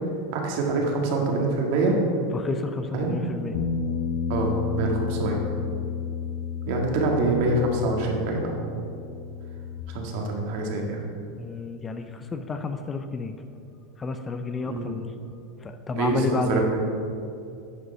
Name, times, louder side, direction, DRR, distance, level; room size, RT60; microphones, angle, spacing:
voice 1, 0.3-2.0 2.9-3.2 4.3-5.4 6.7-8.6 9.9-11.0 14.7-14.9 16.0-16.8, right 2 dB, 60° right, 1 dB, 1.7 m, -25 dB
voice 2, 2.3-3.6 11.4-13.4 14.0-15.1 15.6-16.6, left 4 dB, 20° left, 8 dB, 0.4 m, -30 dB
Bass guitar, 3.5-9.8, left 6 dB, 85° left, 0.7 m, -31 dB
9.9 x 5.2 x 5.5 m, 2.5 s
supercardioid pair, 145°, 0 cm